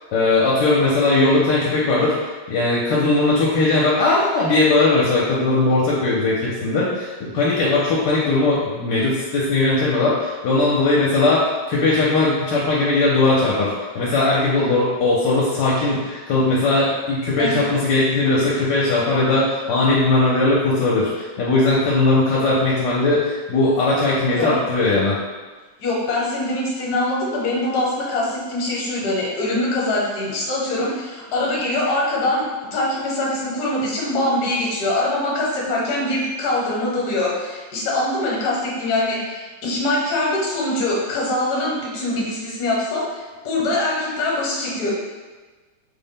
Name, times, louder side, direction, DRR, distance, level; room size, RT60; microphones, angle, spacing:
voice 1, 0.1-11.4 11.7-25.2, left 2 dB, 80° left, -6 dB, 1.3 m, -19 dB
voice 2, 25.8-32.5 32.7-44.9, left 2 dB, 60° left, -4 dB, 1.3 m, -23 dB
3.9 x 2.1 x 3.6 m, 1.3 s
omnidirectional pair, 2.0 m